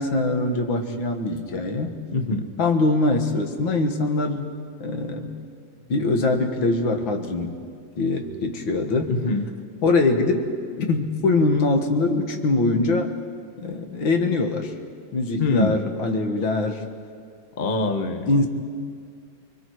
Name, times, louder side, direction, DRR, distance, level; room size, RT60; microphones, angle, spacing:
voice 1, 0.0-2.0 2.6-4.5 4.8-5.3 5.9-7.6 8.0-9.2 9.8-10.5 10.8-13.1 13.6-14.7 15.1-16.8 18.3-18.5, left 2 dB, 85° left, 5 dB, 2.3 m, -23 dB
voice 2, 2.1-2.5 9.1-9.5 15.4-15.8 17.6-18.3, left 2 dB, 35° left, 7 dB, 1.0 m, -23 dB
30.0 x 22.0 x 4.7 m, 2.2 s
omnidirectional pair, 2.0 m